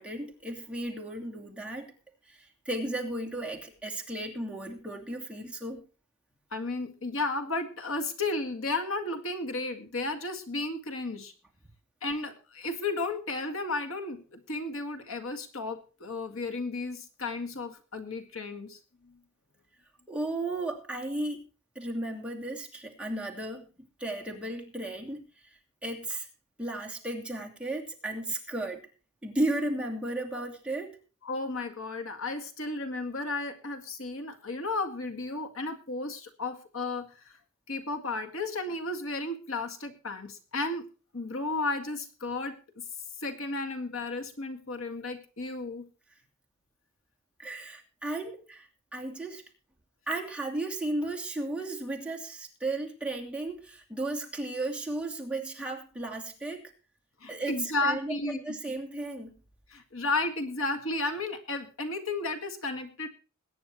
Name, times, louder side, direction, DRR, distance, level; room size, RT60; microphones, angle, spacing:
voice 1, 0.0-1.9 2.3-5.9 20.1-21.4 21.7-23.7 24.0-26.3 26.6-28.9 29.2-31.0 47.4-49.4 50.1-56.7 57.3-59.4, right 2 dB, 5° right, -1 dB, 2.6 m, -35 dB
voice 2, 6.5-11.3 12.0-18.8 19.0-19.2 31.2-37.4 37.7-40.9 41.1-42.6 43.2-45.9 57.2-58.4 59.7-63.1, left 3 dB, 70° left, 5 dB, 1.9 m, -33 dB
21.5 x 9.5 x 3.1 m, 0.34 s
head